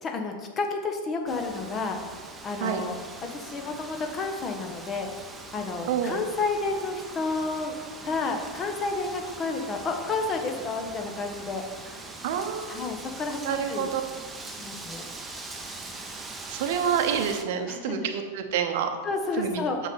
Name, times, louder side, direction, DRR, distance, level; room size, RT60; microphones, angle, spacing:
voice 1, 0.0-3.0 3.3-5.1 5.5-7.8 8.0-11.6 12.7-13.9 14.5-15.0 17.7-18.1 19.0-19.8, left 3 dB, 25° left, 4 dB, 1.2 m, -31 dB
Wind, 1.3-17.4, right 3 dB, 10° right, 0.9 m, -42 dB
voice 2, 5.9-6.2 12.2-12.9 13.4-14.0 16.5-18.9 19.4-19.6, right 8 dB, 50° right, 6 dB, 0.9 m, -28 dB
8.7 x 6.7 x 4.2 m, 1.4 s
figure-of-eight pair, 90°, 0 cm